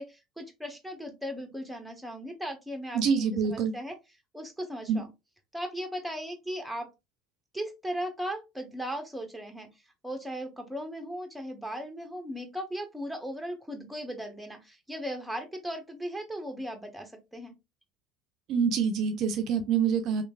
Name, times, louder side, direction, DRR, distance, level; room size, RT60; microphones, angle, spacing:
voice 1, 0.0-3.9 4.3-5.1 5.5-6.9 7.5-9.7 10.0-17.5, equal, ahead, 0.9 m, -37 dB
voice 2, 2.9-3.7 4.9-5.0 18.5-20.2, right 6 dB, 55° right, 0.4 m, -26 dB
3.0 x 2.3 x 2.3 m
hypercardioid pair, 70°, 0 cm